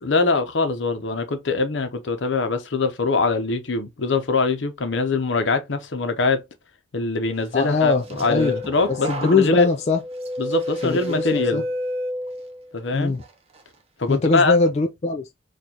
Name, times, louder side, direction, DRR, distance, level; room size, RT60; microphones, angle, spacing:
voice 1, 0.0-6.4 6.9-9.7 10.4-11.6 12.7-13.1 14.0-14.6, left 3 dB, 70° left, 0.7 m, -23 dB
voice 2, 7.5-8.6 9.1-10.0 10.8-11.6 12.9-13.2 14.1-15.2, left 3 dB, 35° left, 0.3 m, -21 dB
sound 1, 7.7-12.8 13.2-13.6, left 1 dB, 30° right, 0.7 m, -30 dB
4.3 x 2.4 x 2.8 m
head